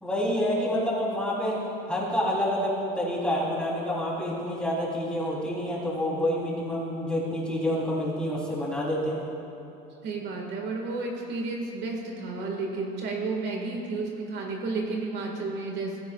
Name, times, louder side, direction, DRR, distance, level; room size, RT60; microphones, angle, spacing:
voice 1, 0.0-1.6 1.9-9.2, equal, 5° left, -6 dB, 3.4 m, -28 dB
voice 2, 10.0-16.0, right 3 dB, 55° right, 0 dB, 1.8 m, -32 dB
18.0 x 15.5 x 2.4 m, 2.9 s
cardioid pair, 135°, 21 cm